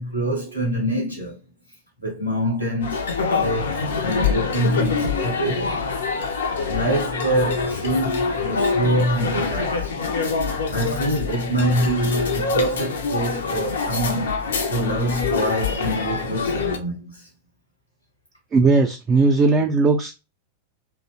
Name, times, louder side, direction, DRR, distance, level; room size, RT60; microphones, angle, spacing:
voice 1, 0.0-1.4 2.0-3.0 3.3-5.8 6.7-9.9 10.7-17.3, right 1 dB, 85° left, 0.9 m, -25 dB
sound 1, 2.8-16.8, left 5 dB, 65° left, 0.4 m, -25 dB
voice 2, 18.5-20.1, right 3 dB, 25° right, 0.3 m, -17 dB
2.5 x 2.0 x 2.8 m
figure-of-eight pair, 90°, 0 cm